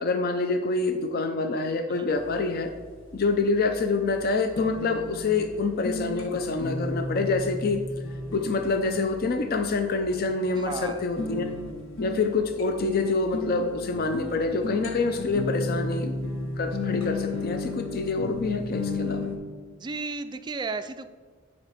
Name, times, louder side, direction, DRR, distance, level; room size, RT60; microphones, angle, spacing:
voice 1, 0.0-2.7 3.1-7.8 8.3-11.5 12.0-16.1 16.6-19.3, left 3 dB, 50° left, 6 dB, 0.5 m, -26 dB
sound 1, 2.1-19.4, left 2 dB, 80° left, 1.2 m, -34 dB
voice 2, 10.5-11.0 19.7-21.1, right 4 dB, 20° right, 10 dB, 0.3 m, -34 dB
10.5 x 4.4 x 4.1 m, 1.5 s
head